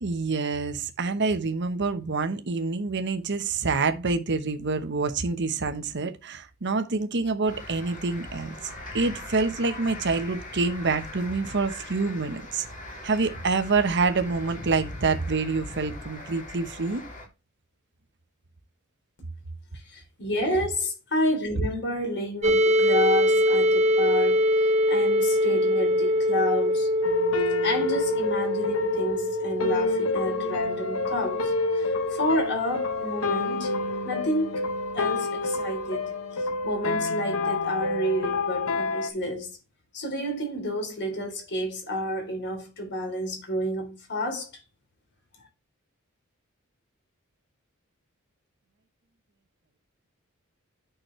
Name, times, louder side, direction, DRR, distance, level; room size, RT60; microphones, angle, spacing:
voice 1, 0.0-12.7 13.0-17.0, right 4 dB, 55° right, 1.0 m, -27 dB
sound 1, 7.4-17.3, left 1 dB, 35° left, 3.2 m, -40 dB
voice 2, 19.8-26.9 27.6-33.7 34.0-34.6 34.9-36.1 36.4-39.6 39.9-44.5, equal, 55° left, 3.3 m, -30 dB
sound 2, 22.4-34.1, equal, 30° right, 0.8 m, -24 dB
sound 3, 27.0-39.1, left 3 dB, 75° left, 1.1 m, -29 dB
9.0 x 6.3 x 3.2 m
head